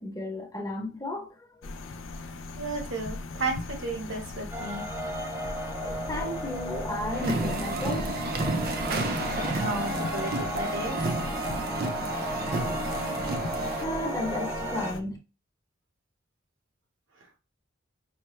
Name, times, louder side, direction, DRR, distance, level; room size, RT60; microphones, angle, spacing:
voice 1, 0.0-1.5 5.7-8.4 13.8-15.2, left 1 dB, 20° left, 0.8 m, -34 dB
sound 1, 1.6-15.0, left 3 dB, 90° left, 0.5 m, -38 dB
voice 2, 2.5-4.8 9.3-11.1, right 3 dB, 75° right, 1.3 m, -33 dB
sound 2, 4.5-14.9, right 1 dB, 15° right, 0.6 m, -35 dB
sound 3, 7.1-13.8, right 2 dB, 50° right, 0.6 m, -32 dB
5.6 x 2.2 x 3.1 m
head